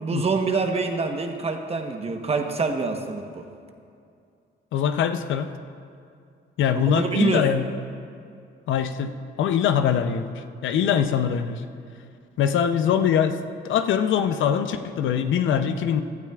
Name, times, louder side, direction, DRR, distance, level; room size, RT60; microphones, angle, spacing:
voice 1, 0.0-3.5 6.7-7.5, right 4 dB, 30° right, 5 dB, 1.0 m, -26 dB
voice 2, 4.7-5.5 6.6-7.6 8.7-11.6 12.4-13.4 13.6-16.0, left 8 dB, 75° left, 9 dB, 0.6 m, -23 dB
16.0 x 12.0 x 2.4 m, 2.4 s
cardioid pair, 90°, 20 cm